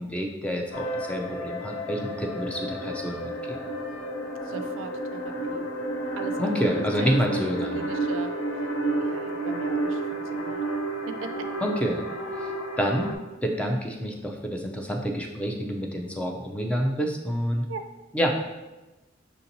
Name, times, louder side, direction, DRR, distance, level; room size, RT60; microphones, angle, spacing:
voice 1, 0.0-3.6 6.4-7.8 11.6-12.0 12.8-13.1 13.4-17.7 18.1-18.3, equal, 5° left, 1 dB, 0.4 m, -28 dB
sound 1, 0.7-13.2, right 2 dB, 75° left, 0.6 m, -31 dB
voice 2, 4.5-5.7 6.2-8.3 9.0-10.6 11.2-11.3 17.7-17.8, right 4 dB, 75° right, 7 dB, 0.4 m, -39 dB
5.8 x 2.8 x 2.7 m, 1.1 s
head